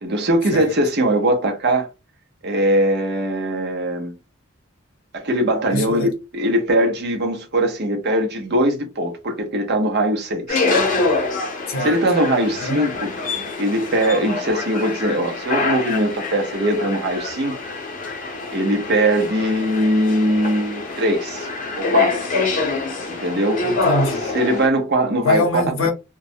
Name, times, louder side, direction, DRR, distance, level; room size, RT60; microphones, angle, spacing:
voice 1, 0.0-1.9 2.4-4.1 5.1-10.7 11.8-17.5 18.5-21.5 21.8-22.3 23.1-23.7 24.3-25.6, right 1 dB, 55° right, 0.7 m, -21 dB
voice 2, 5.7-6.1 11.7-12.0 12.6-12.8 23.6-24.4 25.2-25.9, left 2 dB, 80° left, 0.7 m, -23 dB
sound 1, 10.5-24.7, left 3 dB, 40° left, 0.6 m, -25 dB
2.2 x 2.0 x 2.7 m
head